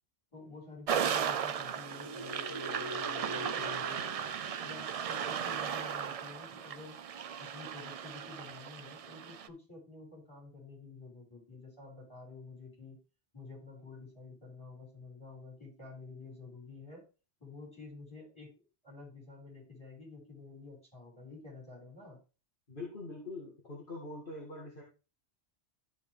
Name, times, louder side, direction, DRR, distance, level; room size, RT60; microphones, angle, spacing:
voice 1, 0.3-4.1 4.6-6.9 7.4-13.0 13.3-17.0 17.4-18.5 18.8-22.2, left 3 dB, 25° left, -2 dB, 5.9 m, -50 dB
sound 1, 0.9-9.5, right 8 dB, 70° right, 0.3 m, -36 dB
sound 2, 1.7-5.5, right 1 dB, 20° right, 1.9 m, -44 dB
voice 2, 22.7-24.8, left 2 dB, 50° left, -2 dB, 2.1 m, -43 dB
13.0 x 4.8 x 3.6 m, 0.32 s
omnidirectional pair, 1.1 m